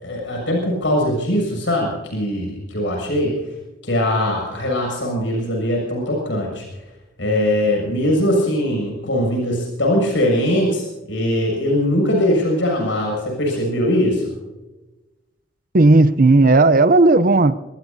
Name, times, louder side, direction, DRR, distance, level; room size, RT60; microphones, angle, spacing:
voice 1, 0.0-3.4 3.8-6.6 7.2-14.2, left 1 dB, 80° left, 0 dB, 6.9 m, -21 dB
voice 2, 15.7-17.5, right 2 dB, 50° right, 13 dB, 0.7 m, -13 dB
26.0 x 20.0 x 2.8 m, 1.1 s
head